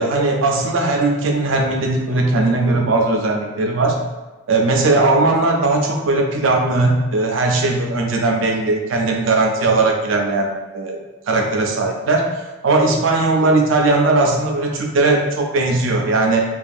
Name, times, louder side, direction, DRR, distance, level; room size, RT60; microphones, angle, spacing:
voice 1, 0.0-4.0 4.5-12.3 12.6-16.4, right 2 dB, 85° right, 1 dB, 0.4 m, -18 dB
2.6 x 2.3 x 2.4 m, 1.2 s
head